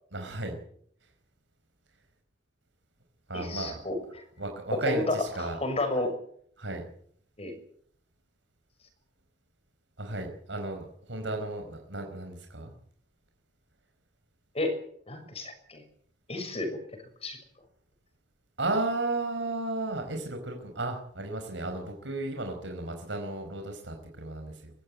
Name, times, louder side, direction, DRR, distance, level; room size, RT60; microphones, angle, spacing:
voice 1, 0.1-0.5 3.3-3.9 4.4-5.6 6.6-6.8 10.0-12.7 18.6-24.7, right 2 dB, 85° right, 4 dB, 4.7 m, -34 dB
voice 2, 3.3-4.2 4.7-6.1 7.4-7.6 14.5-14.7 15.1-15.8 16.3-17.4, left 2 dB, 35° left, 6 dB, 6.5 m, -32 dB
23.0 x 16.0 x 9.5 m, 0.64 s
head